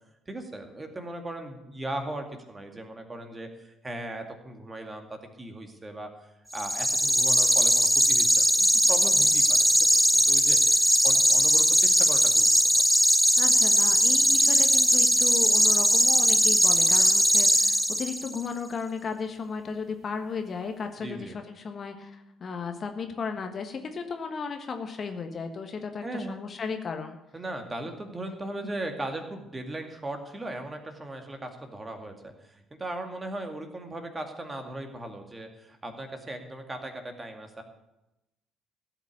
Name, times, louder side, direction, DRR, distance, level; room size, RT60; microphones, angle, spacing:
voice 1, 0.3-6.1 6.5-9.4 9.8-9.9 10.1-12.5 12.7-12.8 21.0-21.3 26.0-26.4 27.3-37.6, right 1 dB, 25° right, 5 dB, 2.2 m, -38 dB
sound 1, 6.5-18.4, equal, ahead, 0.6 m, -20 dB
voice 2, 13.4-27.2, left 5 dB, 40° left, 6 dB, 1.4 m, -35 dB
16.0 x 5.9 x 8.6 m, 0.93 s
figure-of-eight pair, 50°, 0 cm